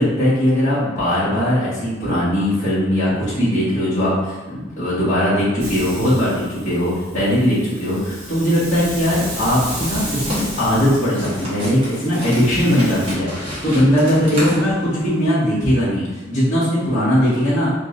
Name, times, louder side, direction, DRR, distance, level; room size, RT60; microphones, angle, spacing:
voice 1, 0.0-17.7, equal, 35° left, -12 dB, 1.5 m, -19 dB
Hiss, 5.6-13.1, right 1 dB, 55° right, 1.4 m, -33 dB
sound 1, 9.6-15.2, equal, 25° right, 1.1 m, -31 dB
3.6 x 3.2 x 2.5 m, 1.2 s
head